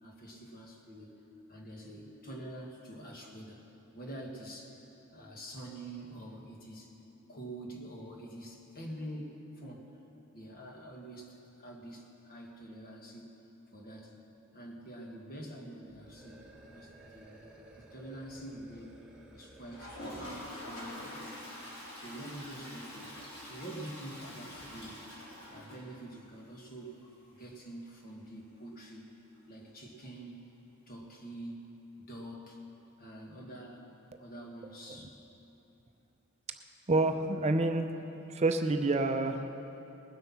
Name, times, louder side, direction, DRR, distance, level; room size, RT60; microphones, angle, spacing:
voice 1, 0.0-1.1 1.5-3.6 3.9-4.8 5.1-7.0 7.3-10.0 10.3-13.3 13.7-14.2 14.5-17.5 17.8-19.0 19.3-23.1 23.4-25.1 25.5-27.0 27.3-29.1 29.5-30.4 30.9-32.6 33.0-33.9 34.2-35.2, right 1 dB, 45° left, 0 dB, 1.7 m, -46 dB
sound 1, 15.9-20.9, right 1 dB, 5° right, 1.6 m, -56 dB
Toilet flush, 19.7-26.4 26.7-26.8 27.0-27.1 27.4-27.5 30.0-30.1 31.4-31.5, left 1 dB, 75° left, 3.6 m, -45 dB
voice 2, 36.9-37.9 38.3-39.5, right 2 dB, 30° right, 6 dB, 0.5 m, -28 dB
20.0 x 7.9 x 5.8 m, 2.9 s
head